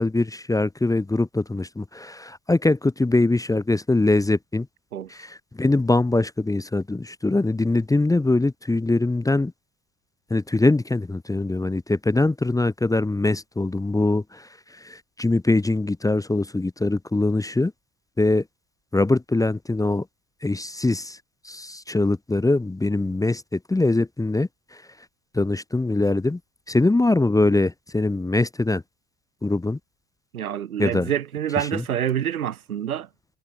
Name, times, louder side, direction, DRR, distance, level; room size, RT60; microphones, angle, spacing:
voice 1, 0.0-4.7 5.1-9.5 10.3-14.5 14.8-17.7 18.2-18.4 18.9-20.1 20.4-21.2 21.4-24.8 25.3-26.4 26.7-28.8 29.4-29.8 30.8-31.1 31.6-31.8, left 2 dB, 10° left, 0.9 m, -22 dB
voice 2, 30.3-33.1, right 10 dB, 85° right, 1.7 m, -27 dB
figure-of-eight pair, 65°, 42 cm